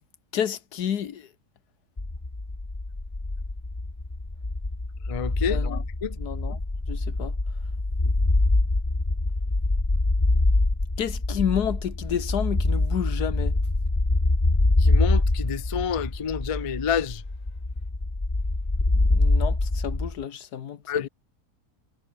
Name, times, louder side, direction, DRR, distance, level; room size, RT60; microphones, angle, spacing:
voice 1, 0.3-1.3 5.5-5.8 6.2-6.6 6.9-7.3 11.0-13.6 19.0-21.1, left 9 dB, 90° left, 1.8 m, -30 dB
sound 1, 2.0-20.2, left 2 dB, 20° left, 1.8 m, -25 dB
voice 2, 5.1-5.6 6.0-6.2 14.8-17.2 20.9-21.1, left 7 dB, 40° left, 0.5 m, -28 dB
omnidirectional pair, 1.6 m